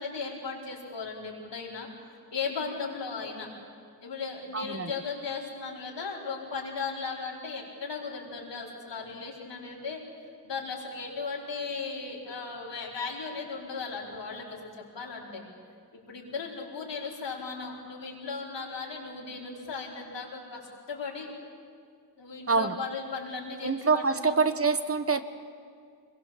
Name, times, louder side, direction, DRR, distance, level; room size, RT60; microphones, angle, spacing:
voice 1, 0.0-1.9 2.3-3.5 4.0-10.0 10.4-15.4 15.9-20.6 20.9-21.3 22.2-24.4, left 4 dB, 80° left, -3 dB, 5.0 m, -36 dB
voice 2, 4.5-4.9 22.5-22.8 23.6-25.2, right 4 dB, 35° right, 11 dB, 1.4 m, -25 dB
24.5 x 22.0 x 7.6 m, 2.2 s
cardioid pair, 65°, 42 cm